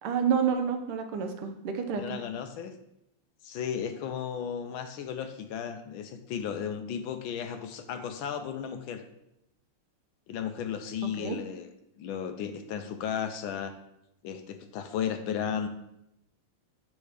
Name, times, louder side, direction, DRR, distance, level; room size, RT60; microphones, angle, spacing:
voice 1, 0.0-2.2 11.2-11.4, right 7 dB, 80° right, 6 dB, 1.7 m, -29 dB
voice 2, 1.9-2.7 3.4-9.0 10.3-11.7 12.0-13.7 14.2-15.7, left 8 dB, 75° left, 7 dB, 1.3 m, -34 dB
7.9 x 3.2 x 4.9 m, 0.82 s
omnidirectional pair, 2.4 m